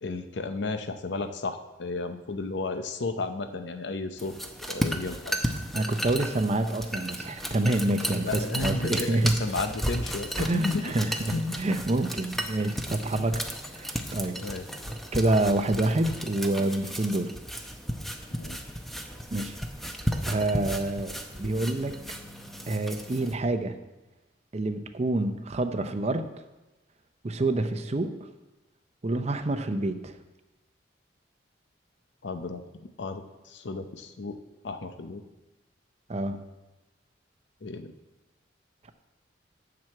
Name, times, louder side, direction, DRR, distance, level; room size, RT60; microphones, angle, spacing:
voice 1, 0.0-4.4 4.7-5.4 8.2-11.0 11.3-11.5 14.3-14.7 18.3-18.6 32.2-34.4 34.6-35.2 37.6-37.9, left 3 dB, 70° left, 9 dB, 0.7 m, -33 dB
sound 1, 4.2-23.3, equal, ahead, 0.7 m, -34 dB
voice 2, 5.7-9.4 10.4-13.4 13.8-14.4 14.9-17.3 19.3-19.6 20.3-21.1 21.4-22.0 22.7-23.8 24.5-26.3 27.2-28.2 29.0-30.1 36.1-36.4, right 2 dB, 35° right, 8 dB, 0.6 m, -27 dB
7.5 x 6.2 x 7.6 m, 1.1 s
head